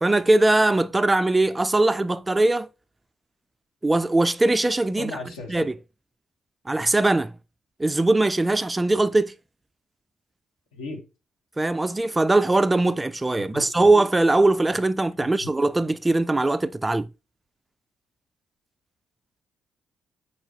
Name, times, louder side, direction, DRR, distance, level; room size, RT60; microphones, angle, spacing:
voice 1, 0.0-2.7 3.8-5.1 5.5-5.7 6.7-7.3 7.8-9.3 11.6-17.1, right 2 dB, 20° right, 0.3 m, -21 dB
voice 2, 5.0-5.7 10.7-11.0 13.3-13.9 15.3-15.5, left 3 dB, 75° left, 1.1 m, -37 dB
4.4 x 4.2 x 2.8 m
hypercardioid pair, 45°, 0 cm